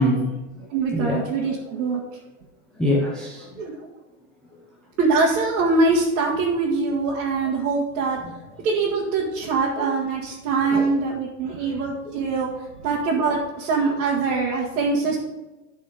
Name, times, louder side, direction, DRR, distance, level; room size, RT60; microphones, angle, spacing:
voice 1, 0.0-1.2 1.7-2.0 2.8-3.6 4.5-4.6 8.2-8.3 9.8-9.9 10.7-11.0 11.6-11.8, left 1 dB, ahead, -4 dB, 0.5 m, -26 dB
voice 2, 0.7-2.0 3.6-3.7 5.0-8.2 8.6-12.5 12.8-15.2, right 4 dB, 70° right, -4 dB, 2.0 m, -23 dB
12.5 x 4.3 x 5.0 m, 1.1 s
supercardioid pair, 165°, 43 cm